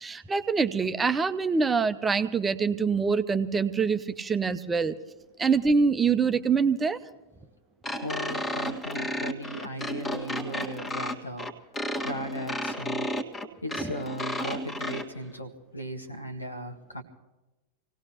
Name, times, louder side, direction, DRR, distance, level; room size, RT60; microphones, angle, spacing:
voice 1, 0.0-5.0 5.4-7.0 13.8-13.9, right 5 dB, 15° right, 9 dB, 0.8 m, -25 dB
sound 1, 7.8-15.0, left 1 dB, 15° left, 1.6 m, -32 dB
voice 2, 8.0-11.5 12.0-13.1 13.6-17.0, equal, 85° left, 4 dB, 1.9 m, -37 dB
27.0 x 18.0 x 2.9 m, 1.0 s
figure-of-eight pair, 90°, 0 cm